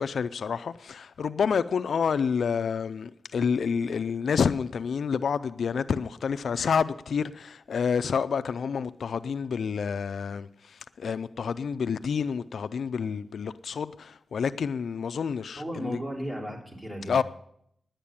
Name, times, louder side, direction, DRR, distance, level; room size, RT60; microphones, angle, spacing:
voice 1, 0.0-16.0 17.1-17.2, left 6 dB, 75° left, 0.4 m, -28 dB
voice 2, 15.6-17.2, equal, 20° right, 3.4 m, -35 dB
10.5 x 8.9 x 8.5 m
wide cardioid pair, 110°, 0 cm